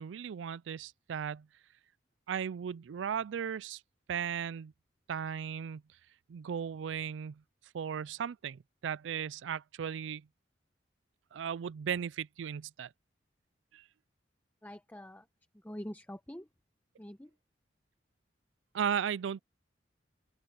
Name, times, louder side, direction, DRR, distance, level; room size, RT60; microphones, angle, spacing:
voice 1, 0.0-1.5 2.3-3.8 4.1-4.7 5.1-5.8 6.3-7.4 7.7-10.3 11.3-12.9 13.7-13.8 18.7-19.4, right 8 dB, 85° right, 0.4 m, -36 dB
voice 2, 14.6-15.2 15.6-16.5 17.0-17.3, equal, 10° left, 0.9 m, -44 dB
open air
head